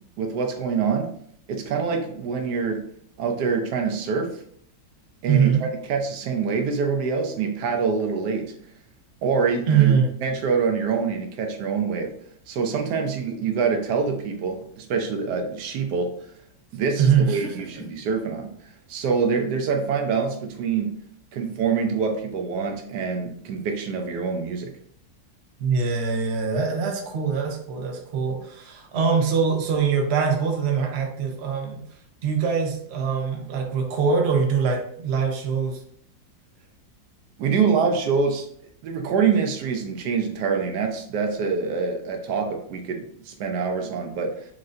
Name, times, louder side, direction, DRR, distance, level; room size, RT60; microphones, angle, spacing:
voice 1, 0.2-1.1 1.5-2.8 3.2-4.4 5.2-8.5 9.2-12.1 12.5-16.1 16.7-18.5 18.9-20.9 21.3-24.7 37.4-38.5 38.8-44.4, right 5 dB, 70° right, 4 dB, 1.1 m, -25 dB
voice 2, 5.3-5.6 9.7-10.1 17.0-17.5 25.6-31.8 32.2-35.8, right 6 dB, 85° right, 2 dB, 0.5 m, -23 dB
4.6 x 2.6 x 3.2 m, 0.64 s
omnidirectional pair, 2.1 m